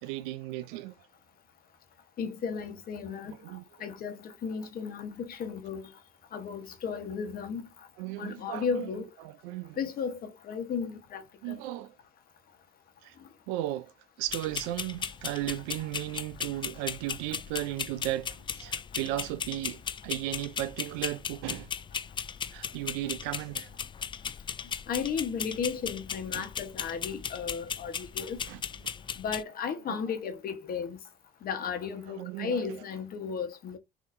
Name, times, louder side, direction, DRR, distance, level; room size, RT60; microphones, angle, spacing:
voice 1, 0.0-0.9 3.3-3.6 8.0-8.9 9.2-9.8 11.4-11.9 13.0-13.1 13.5-13.9 14.2-21.7 22.5-23.9 26.3-26.5 28.5-28.6 29.9-30.0 32.1-32.7, right 15 dB, 80° right, 0.4 m, -35 dB
voice 2, 2.2-5.9 6.3-7.9 8.2-9.1 9.8-11.6 13.2-13.3 24.6-28.4 29.2-31.0 31.4-33.8, left 6 dB, 55° left, 1.1 m, -35 dB
sound 1, 14.3-29.4, left 7 dB, 25° left, 0.3 m, -37 dB
4.0 x 2.7 x 2.5 m
hypercardioid pair, 65°, 18 cm